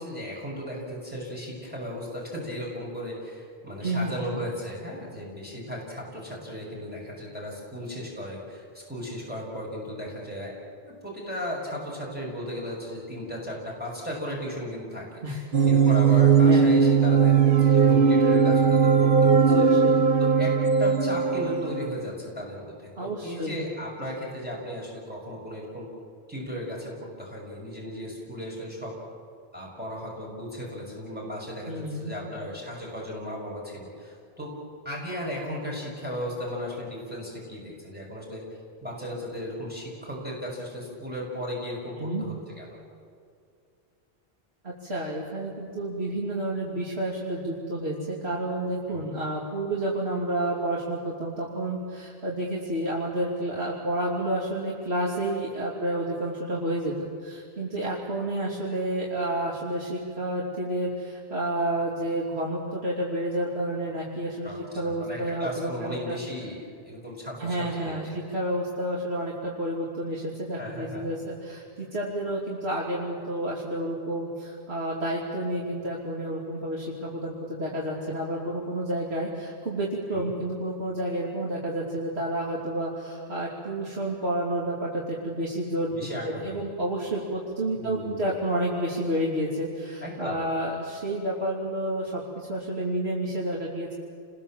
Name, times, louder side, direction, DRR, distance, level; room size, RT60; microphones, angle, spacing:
voice 1, 0.0-10.5 10.8-15.1 15.3-19.7 20.2-25.9 26.3-28.9 29.5-34.5 34.8-38.4 38.8-42.8 48.9-49.1 64.4-68.2 70.6-71.0 80.1-80.3 85.9-86.6 87.7-88.3 90.0-90.4, equal, 10° right, -4 dB, 6.0 m, -36 dB
voice 2, 3.8-4.1 15.2-15.4 16.1-16.2 16.5-16.7 19.5-19.9 23.0-23.6 31.7-32.1 42.0-42.2 44.6-64.5 64.8-66.2 67.4-86.0 86.2-93.9, right 1 dB, 75° right, -4 dB, 3.2 m, -30 dB
sound 1, 15.5-22.1, right 6 dB, 55° right, 1.0 m, -19 dB
29.5 x 21.5 x 7.5 m, 2.4 s
omnidirectional pair, 1.1 m